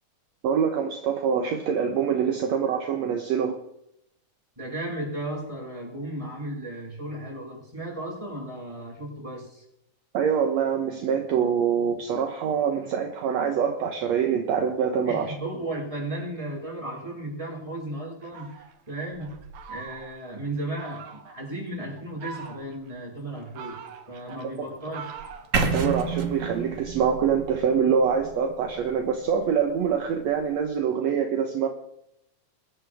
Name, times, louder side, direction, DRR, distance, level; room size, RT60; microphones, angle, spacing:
voice 1, 0.4-3.6 10.1-15.3 25.7-31.7, right 7 dB, 65° right, 4 dB, 2.2 m, -25 dB
voice 2, 4.6-9.6 15.0-19.4 19.7-25.2, right 1 dB, 10° right, -2 dB, 5.8 m, -35 dB
Fowl, 18.2-20.3 20.8-21.4 22.0-22.9 23.3-26.1, right 6 dB, 90° right, 2.8 m, -43 dB
sound 1, 25.5-29.5, right 4 dB, 45° right, 1.1 m, -30 dB
22.5 x 12.5 x 3.5 m, 0.79 s
omnidirectional pair, 3.5 m